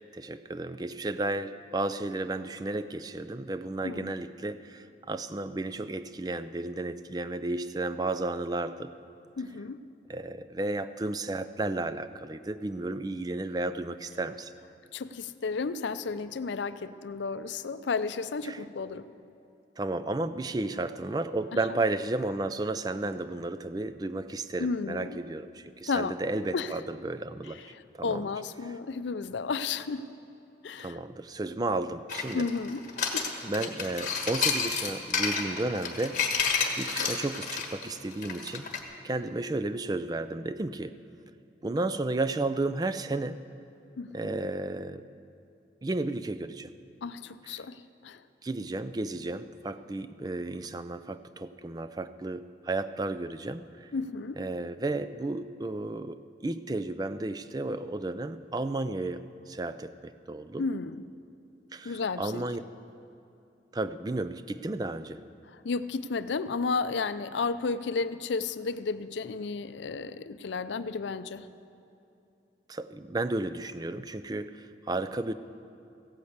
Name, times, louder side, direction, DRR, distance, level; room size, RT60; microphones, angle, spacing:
voice 1, 0.1-8.9 10.1-14.5 18.4-18.6 19.8-28.3 30.8-32.5 33.4-38.7 39.0-41.0 41.6-43.4 44.1-45.0 45.8-46.7 47.4-47.6 48.4-53.9 54.4-60.7 61.7-62.6 63.7-65.2 72.7-75.3, right 2 dB, 20° right, 12 dB, 0.3 m, -33 dB
voice 2, 3.8-4.2 9.4-9.8 14.9-19.0 24.6-25.2 25.9-26.2 26.5-26.7 27.7-30.0 30.6-31.0 32.3-32.8 33.1-33.3 44.0-44.4 47.0-48.2 53.9-54.4 60.6-61.0 61.8-62.4 65.5-71.5, left 4 dB, 75° left, 13 dB, 0.5 m, -33 dB
sound 1, 32.1-38.8, left 5 dB, 45° left, 1.4 m, -30 dB
15.5 x 8.5 x 8.0 m, 2.7 s
head